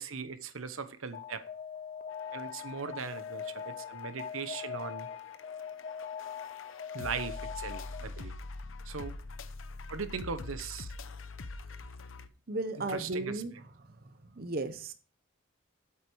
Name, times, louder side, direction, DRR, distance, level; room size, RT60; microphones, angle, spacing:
voice 1, 0.0-1.4 2.3-5.1 6.9-8.4 8.8-9.1 9.9-10.9 12.9-13.4, right 5 dB, 85° right, 1.0 m, -39 dB
Alarm, 1.1-8.2, left 7 dB, 40° left, 0.4 m, -42 dB
sound 1, 2.1-12.3, left 3 dB, 75° left, 0.7 m, -45 dB
voice 2, 12.5-13.5 14.4-14.9, right 2 dB, 45° right, 0.8 m, -34 dB
8.3 x 8.1 x 4.7 m
head